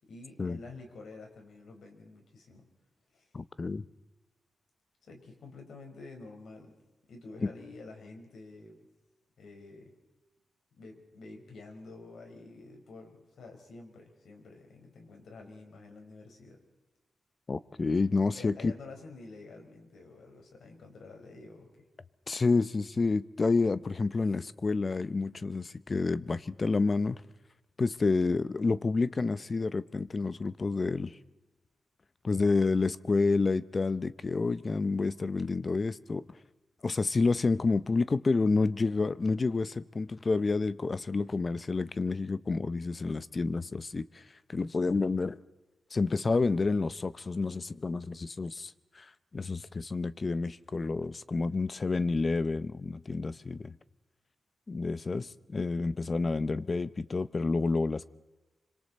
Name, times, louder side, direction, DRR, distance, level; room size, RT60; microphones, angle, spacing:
voice 1, 0.0-2.7 3.1-3.3 5.0-6.8 7.1-8.8 9.4-9.9 10.7-16.6 18.3-21.9, left 3 dB, 75° left, 4.8 m, -49 dB
voice 2, 3.3-3.8 7.4-7.5 17.5-18.7 22.3-27.2 27.8-31.2 32.2-36.3 36.8-44.2 44.5-45.4 45.9-53.7 54.7-58.1, left 3 dB, 35° left, 0.7 m, -29 dB
26.5 x 25.5 x 4.2 m
cardioid pair, 100°, 0 cm